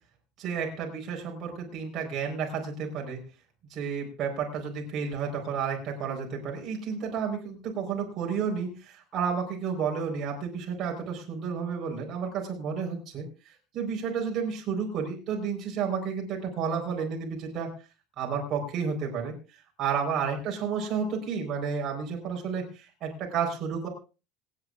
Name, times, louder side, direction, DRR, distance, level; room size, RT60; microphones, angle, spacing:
voice 1, 0.4-3.2 3.7-13.3 13.7-17.7 18.2-19.3 19.8-23.9, right 6 dB, 35° right, 0 dB, 4.4 m, -31 dB
26.5 x 9.7 x 2.5 m, 0.33 s
cardioid pair, 170°, 0 cm